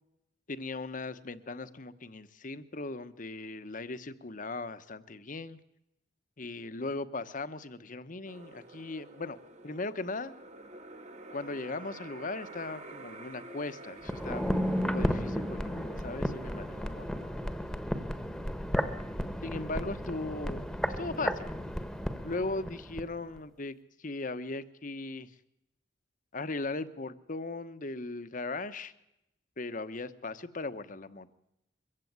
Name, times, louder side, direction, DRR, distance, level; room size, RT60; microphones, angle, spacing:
voice 1, 0.5-5.6 6.4-9.4 9.6-10.3 11.3-17.4 19.4-21.5 22.2-25.3 26.3-28.9 29.6-31.3, left 3 dB, 45° left, 13 dB, 1.1 m, -38 dB
sound 1, 8.3-17.5, right 2 dB, 40° right, 1.6 m, -49 dB
sound 2, 14.0-23.1 23.4-23.5, equal, 5° left, 1.3 m, -33 dB
22.5 x 15.5 x 9.5 m, 0.86 s
head